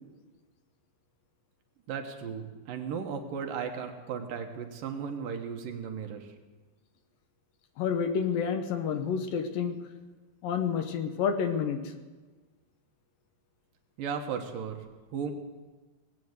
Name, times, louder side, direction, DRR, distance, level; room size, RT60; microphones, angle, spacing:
voice 1, 1.9-6.3 14.0-14.8 15.1-15.3, right 6 dB, 75° right, 5 dB, 2.8 m, -35 dB
voice 2, 7.8-9.8 10.4-11.8, left 7 dB, 80° left, 8 dB, 2.8 m, -29 dB
19.0 x 8.5 x 8.0 m, 1.3 s
omnidirectional pair, 4.1 m